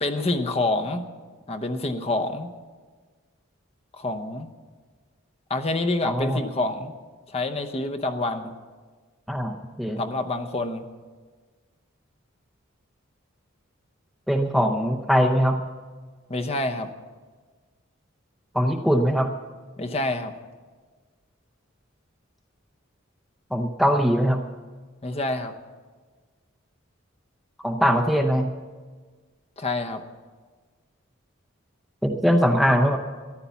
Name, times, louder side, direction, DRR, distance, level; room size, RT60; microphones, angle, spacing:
voice 1, 0.0-1.1 1.5-2.5 4.0-4.5 5.5-6.9 7.3-8.5 10.0-10.8 16.3-16.9 19.8-20.3 25.0-25.5 29.6-30.0, left 2 dB, 30° left, 5 dB, 0.8 m, -27 dB
voice 2, 6.0-6.4 9.3-10.0 14.3-15.6 18.5-19.3 23.5-24.4 27.6-28.5 32.0-33.0, equal, ahead, 4 dB, 0.6 m, -21 dB
14.0 x 10.5 x 7.0 m, 1.4 s
head